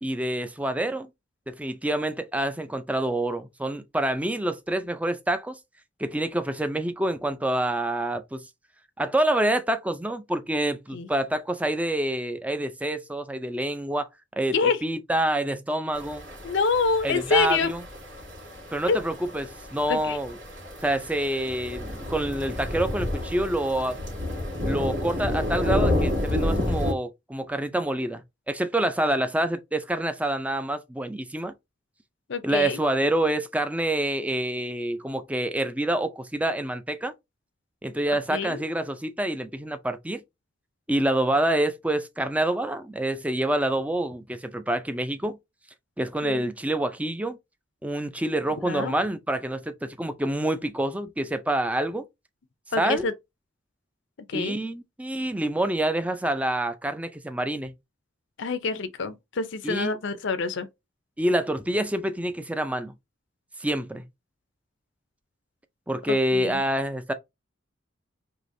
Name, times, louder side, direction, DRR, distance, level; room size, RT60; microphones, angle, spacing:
voice 1, 0.0-1.1 1.5-5.6 6.0-8.4 9.0-14.1 14.4-14.5 14.8-16.3 17.0-17.8 18.7-20.4 20.8-24.0 24.7-28.2 28.5-31.5 32.4-37.1 37.8-40.2 40.9-45.4 46.0-47.4 47.8-52.0 52.8-53.1 54.3-57.7 59.6-60.0 61.2-62.9 63.6-64.0 65.9-67.1, right 1 dB, 5° right, 0.5 m, -27 dB
sound 1, 15.9-26.9, left 1 dB, 65° right, 2.7 m, -30 dB
voice 2, 16.4-17.7 18.9-19.0 19.9-20.2 32.3-32.8 38.1-38.6 46.2-46.5 48.7-49.0 52.7-53.1 54.3-54.6 58.4-60.7 66.1-66.6, left 4 dB, 65° left, 0.6 m, -26 dB
4.8 x 3.0 x 2.6 m
head